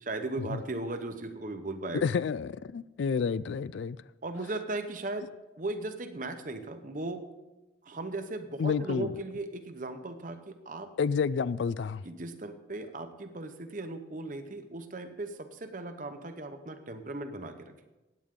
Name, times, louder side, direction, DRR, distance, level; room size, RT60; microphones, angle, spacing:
voice 1, 0.0-2.0 4.2-7.3 7.8-10.9 12.0-17.7, right 2 dB, 45° right, 0.9 m, -37 dB
voice 2, 1.9-4.0 8.6-9.1 11.0-12.0, left 6 dB, 75° left, 0.3 m, -29 dB
16.5 x 8.9 x 3.7 m
head